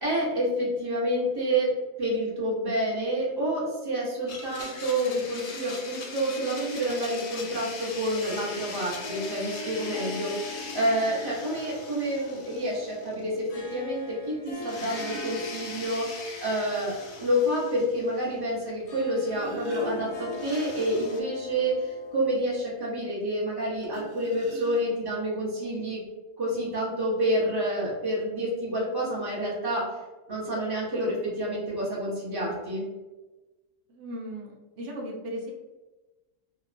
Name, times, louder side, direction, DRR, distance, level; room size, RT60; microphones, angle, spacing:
voice 1, 0.0-26.0 26.4-30.0 30.3-32.8, equal, 25° right, -7 dB, 0.6 m, -28 dB
Domestic sounds home sounds, 4.3-13.4 13.7-13.8 14.6-18.5 20.3-21.2, left 4 dB, 90° left, 1.1 m, -41 dB
Harp, 7.8-23.1, left 3 dB, 65° left, 0.7 m, -43 dB
sound 1, 10.5-11.2 12.5-12.6 14.4-16.2 16.5-16.6 17.0-17.1 17.6-17.7 19.0-20.5 23.8-25.2 26.1-26.2 26.5-26.7, right 3 dB, 80° right, 1.2 m, -45 dB
voice 2, 33.9-35.5, equal, 60° right, -1 dB, 0.7 m, -37 dB
2.9 x 2.2 x 2.5 m, 1.1 s
omnidirectional pair, 1.6 m